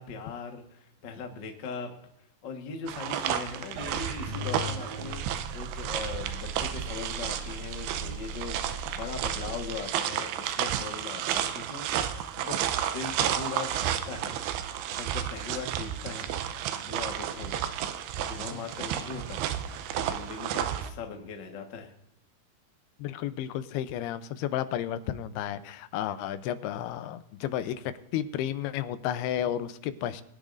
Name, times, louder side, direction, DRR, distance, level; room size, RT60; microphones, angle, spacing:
voice 1, 0.0-1.9 2.4-11.9 12.4-14.4 14.9-16.4 16.9-17.6 18.1-19.4 19.9-21.9, left 5 dB, 65° left, 3 dB, 1.1 m, -39 dB
sound 1, 2.9-20.9, right 10 dB, 85° right, 2.6 m, -32 dB
sound 2, 3.8-9.8, equal, 70° right, 2.7 m, -39 dB
voice 2, 23.0-30.2, left 11 dB, 85° left, 12 dB, 2.6 m, -32 dB
22.0 x 10.0 x 2.6 m, 0.77 s
omnidirectional pair, 4.5 m